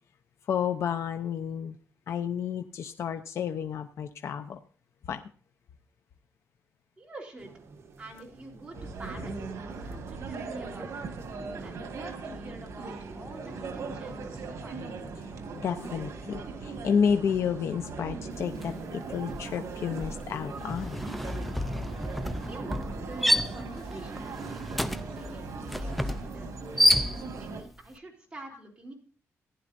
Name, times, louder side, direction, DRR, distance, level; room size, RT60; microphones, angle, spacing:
voice 1, 0.5-1.8 2.1-4.6 5.1-5.2 15.5-21.0, left 7 dB, 65° left, 7 dB, 0.7 m, -30 dB
voice 2, 7.0-7.5 8.0-11.1 11.6-14.9 22.4-26.7 27.3-28.9, right 2 dB, 20° right, -1 dB, 3.8 m, -46 dB
sound 1, 7.4-20.9, right 4 dB, 60° right, 1.4 m, -52 dB
sound 2, 8.7-27.6, right 4 dB, 75° right, 1.9 m, -39 dB
sound 3, 18.6-18.8 19.1-27.6, left 1 dB, ahead, 0.5 m, -29 dB
15.0 x 11.0 x 2.6 m, 0.41 s
wide cardioid pair, 175°, 5 cm